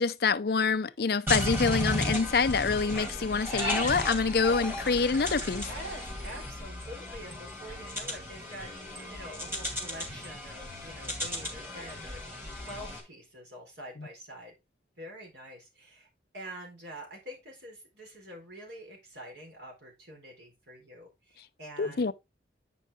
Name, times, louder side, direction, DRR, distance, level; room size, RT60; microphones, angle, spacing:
voice 1, 0.0-5.7 21.8-22.1, left 5 dB, 55° left, 0.5 m, -26 dB
sound 1, 1.3-13.0, left 1 dB, 15° right, 2.5 m, -35 dB
voice 2, 5.6-14.5 15.0-16.1 16.3-22.1, equal, 75° right, 4.3 m, -46 dB
8.6 x 5.5 x 3.5 m
head